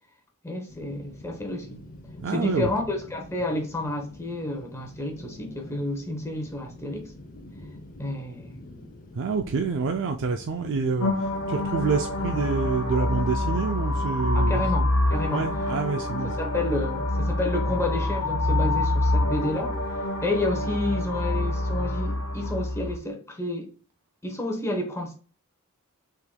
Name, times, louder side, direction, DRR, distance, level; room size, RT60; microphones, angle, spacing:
voice 1, 0.4-1.8 2.3-7.1 8.0-8.6 14.3-14.8 15.1-15.4 16.4-19.7 20.2-23.7 24.2-25.1, left 2 dB, 10° left, 0.9 m, -30 dB
sound 1, 0.7-16.2, left 1 dB, 40° left, 0.6 m, -46 dB
voice 2, 2.2-2.7 9.1-14.6 15.3-16.4, right 4 dB, 55° right, 0.4 m, -27 dB
sound 2, 11.0-23.0, left 1 dB, 70° left, 0.9 m, -26 dB
5.5 x 3.8 x 2.2 m
head